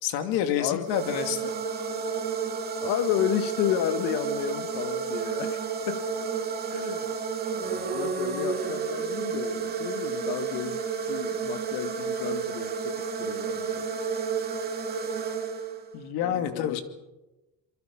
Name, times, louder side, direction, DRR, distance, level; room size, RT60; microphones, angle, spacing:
voice 1, 0.0-1.5 15.9-16.8, left 9 dB, 85° left, 7 dB, 2.7 m, -28 dB
sound 1, 0.8-16.0, right 6 dB, 25° right, 2.7 m, -31 dB
voice 2, 2.8-6.1 6.7-7.2 7.6-13.9 16.2-16.8, left 12 dB, 70° left, 8 dB, 1.4 m, -32 dB
28.0 x 24.0 x 5.5 m, 1.0 s
cardioid pair, 165°, 36 cm